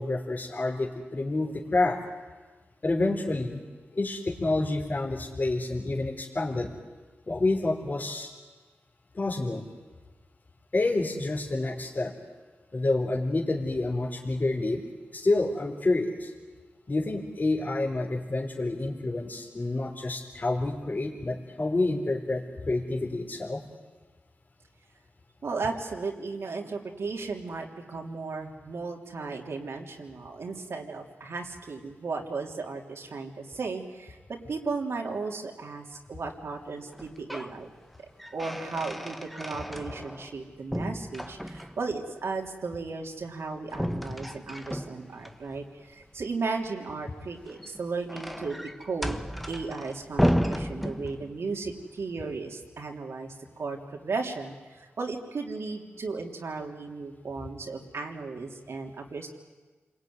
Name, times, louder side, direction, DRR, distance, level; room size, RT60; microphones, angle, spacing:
voice 1, 0.0-2.0 2.8-3.6 3.9-6.7 7.3-8.3 9.1-9.6 10.7-12.1 12.7-14.8 15.1-16.3 16.9-23.6, left 2 dB, 40° left, 1 dB, 3.8 m, -28 dB
voice 2, 25.4-37.7 38.0-49.2 49.5-53.8 54.0-59.3, right 4 dB, 70° right, 1 dB, 3.4 m, -35 dB
sound 1, 36.9-37.6 37.9-40.4 40.7-41.9 43.7-45.3 47.3-51.5, equal, ahead, 1.3 m, -32 dB
28.0 x 21.5 x 9.6 m, 1.3 s
cardioid pair, 70°, 5 cm